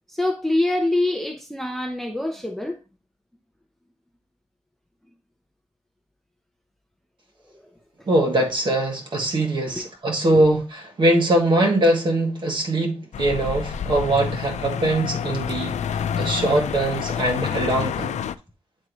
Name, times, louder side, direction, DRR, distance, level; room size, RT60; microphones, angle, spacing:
voice 1, 0.1-2.8 9.8-9.9 10.3-10.4, left 1 dB, ahead, 0.6 m, -25 dB
voice 2, 8.1-18.2, right 1 dB, 45° right, 2.0 m, -22 dB
sound 1, 13.1-18.3, left 8 dB, 90° left, 0.4 m, -28 dB
9.0 x 3.6 x 3.0 m
wide cardioid pair, 175°, 12 cm